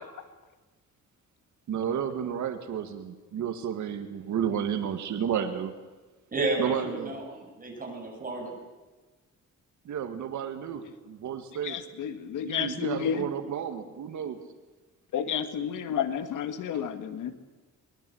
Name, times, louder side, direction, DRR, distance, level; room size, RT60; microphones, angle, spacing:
voice 1, 1.7-5.7 6.6-7.1 9.9-11.8 12.4-14.4, right 8 dB, 70° right, 7 dB, 2.0 m, -32 dB
voice 2, 6.3-8.5, right 2 dB, 30° right, 0 dB, 7.6 m, -32 dB
voice 3, 11.6-13.3 15.1-17.5, left 8 dB, 85° left, 9 dB, 1.9 m, -31 dB
23.0 x 21.5 x 7.9 m, 1.2 s
cardioid pair, 130°, 30 cm